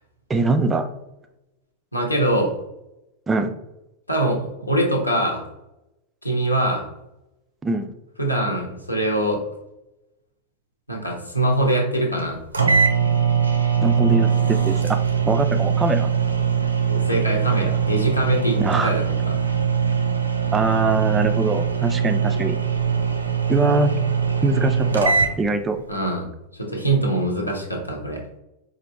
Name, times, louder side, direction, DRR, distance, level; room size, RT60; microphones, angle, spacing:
voice 1, 0.3-0.9 3.3-3.6 7.6-7.9 13.8-16.1 18.6-18.9 20.5-22.6 23.5-23.9 24.4-25.8, right 3 dB, 15° right, 8 dB, 0.4 m, -22 dB
voice 2, 1.9-2.5 4.1-5.4 6.2-6.9 8.2-9.4 10.9-12.4 16.9-19.4 25.9-26.3 26.5-28.2, right 1 dB, 85° left, 0 dB, 1.0 m, -23 dB
sound 1, 12.2-12.3 12.5-25.3, right 6 dB, 80° right, 0.5 m, -21 dB
5.0 x 2.6 x 3.1 m, 0.92 s
figure-of-eight pair, 90°, 0 cm